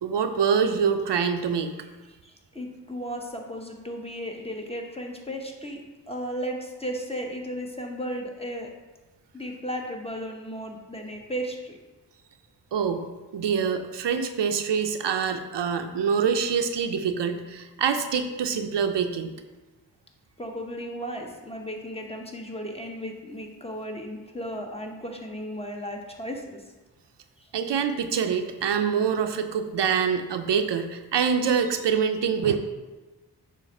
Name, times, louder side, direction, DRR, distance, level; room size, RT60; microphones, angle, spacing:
voice 1, 0.0-1.7 12.7-13.1 13.3-19.3 27.5-32.6, right 6 dB, 85° right, 7 dB, 0.6 m, -25 dB
voice 2, 2.2-5.8 6.1-8.7 9.3-11.8 20.4-26.6 27.4-27.5, equal, 15° left, 1 dB, 0.8 m, -35 dB
7.2 x 2.5 x 5.3 m, 1.2 s
wide cardioid pair, 80°, 41 cm